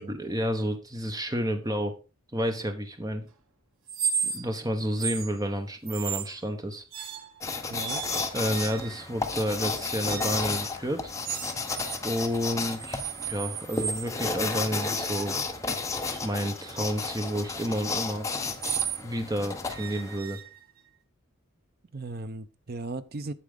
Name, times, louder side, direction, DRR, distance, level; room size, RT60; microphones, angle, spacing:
voice 1, 0.0-2.0 2.3-3.3 4.2-6.8 8.3-11.1 12.0-13.0 13.3-15.4 16.2-18.3 19.0-20.4, equal, 15° right, 0.9 m, -30 dB
sound 1, 3.9-4.6 4.9-5.3 5.9-6.4 6.9-7.4 7.8-9.1 10.1-10.4 11.2-12.0 12.3-14.1 14.7-19.1 19.7-20.9, right 7 dB, 80° right, 1.0 m, -35 dB
sound 2, 7.4-20.2, left 4 dB, 15° left, 0.7 m, -33 dB
voice 2, 7.7-8.0 21.9-23.3, right 2 dB, 45° right, 0.6 m, -37 dB
8.3 x 7.5 x 3.7 m
head